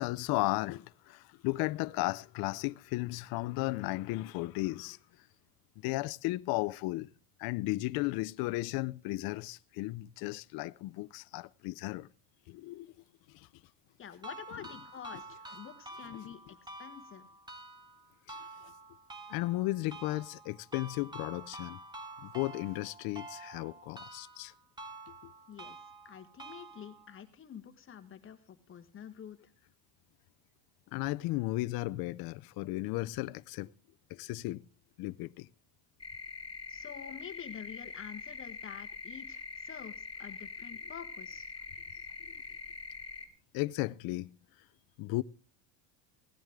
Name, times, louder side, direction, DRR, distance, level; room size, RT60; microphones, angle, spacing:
voice 1, 0.0-5.0 5.8-7.1 7.4-12.1 12.5-12.9 13.3-13.5 16.1-16.5 18.3-18.7 19.3-21.8 22.2-24.5 25.1-25.3 30.9-33.7 34.1-34.6 35.0-35.5 43.5-44.3 45.0-45.2, left 20 dB, 55° left, 0.5 m, -35 dB
voice 2, 14.0-17.3 25.5-25.8 26.0-28.4 28.7-29.4 36.7-41.5, left 8 dB, 30° left, 1.4 m, -48 dB
sound 1, 14.2-27.2, right 2 dB, 10° right, 1.3 m, -48 dB
sound 2, 36.0-43.3, left 5 dB, 10° left, 2.4 m, -44 dB
17.0 x 10.5 x 3.6 m
cardioid pair, 150°, 44 cm